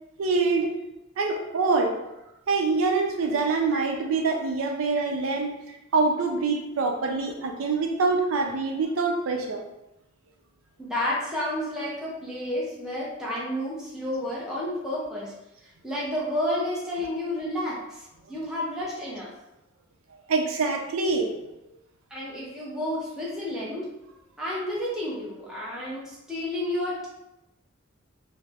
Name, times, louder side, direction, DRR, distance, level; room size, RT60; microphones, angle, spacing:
voice 1, 0.2-0.7 1.2-1.9 2.5-5.5 5.9-9.6 20.3-21.3, right 4 dB, 90° right, 3 dB, 0.4 m, -25 dB
voice 2, 10.8-15.3 15.8-19.3 22.1-23.9 24.4-27.1, left 1 dB, 5° right, -7 dB, 0.6 m, -31 dB
2.4 x 2.0 x 3.3 m, 0.90 s
head